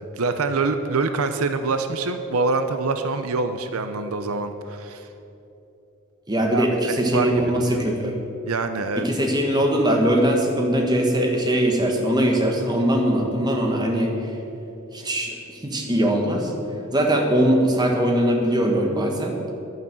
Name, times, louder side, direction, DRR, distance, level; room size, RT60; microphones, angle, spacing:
voice 1, 0.2-5.1 6.5-7.3 7.6-7.8 8.4-9.0, right 3 dB, 75° right, 8 dB, 0.7 m, -25 dB
voice 2, 6.3-8.1 9.0-14.1 14.9-16.5 16.9-19.4, right 1 dB, 20° right, 1 dB, 1.5 m, -21 dB
11.0 x 9.4 x 7.7 m, 2.9 s
head